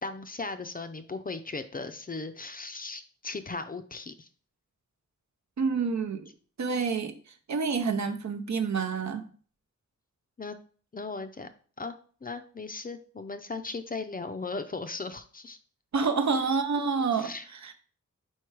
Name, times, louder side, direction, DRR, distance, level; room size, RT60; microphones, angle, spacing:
voice 1, 0.0-4.3 10.4-10.6 10.9-11.5 11.8-12.0 12.2-15.6 17.1-17.5, left 3 dB, 30° left, 9 dB, 0.4 m, -37 dB
voice 2, 5.6-6.3 6.6-7.1 7.5-9.2 15.9-17.7, right 5 dB, 65° right, 7 dB, 0.7 m, -28 dB
4.5 x 4.5 x 4.7 m, 0.43 s
wide cardioid pair, 125°, 30 cm